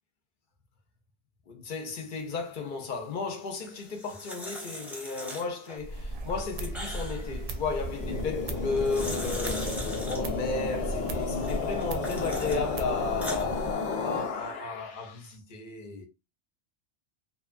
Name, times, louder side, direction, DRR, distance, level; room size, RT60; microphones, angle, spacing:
voice 1, 1.5-9.7 10.1-13.7 14.0-16.1, left 4 dB, 55° left, 0.6 m, -34 dB
sound 1, 3.7-5.8 6.2-7.4 8.6-10.2 11.4-12.6 13.0-13.4, equal, ahead, 0.7 m, -40 dB
sound 2, 5.8-13.7, right 1 dB, 70° right, 0.8 m, -37 dB
sound 3, 7.7-15.1, left 4 dB, 90° left, 1.0 m, -33 dB
2.7 x 2.2 x 2.4 m
omnidirectional pair, 1.1 m